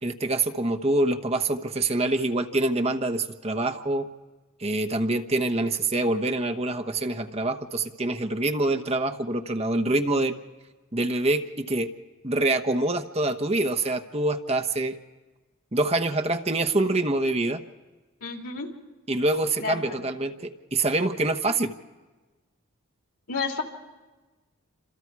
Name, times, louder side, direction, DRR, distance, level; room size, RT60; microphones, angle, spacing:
voice 1, 0.0-4.1 4.6-10.4 10.9-11.9 12.2-15.0 15.7-17.6 19.1-21.7, right 2 dB, 30° right, 4 dB, 1.0 m, -25 dB
voice 2, 18.2-18.7 19.6-20.0 23.3-23.6, left 4 dB, 85° left, 2 dB, 3.1 m, -31 dB
29.0 x 26.5 x 4.8 m, 1.2 s
head